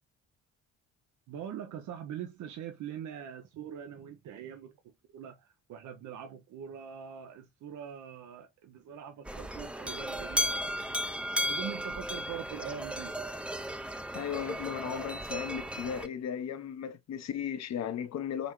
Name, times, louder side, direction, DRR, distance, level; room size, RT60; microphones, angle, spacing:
voice 1, 1.3-10.6 11.4-13.2, right 9 dB, 75° right, 0.6 m, -43 dB
sound 1, 9.2-16.1, equal, 5° right, 0.4 m, -35 dB
voice 2, 14.1-18.5, left 8 dB, 60° left, 0.8 m, -36 dB
4.0 x 3.2 x 3.0 m
cardioid pair, 90°, 30 cm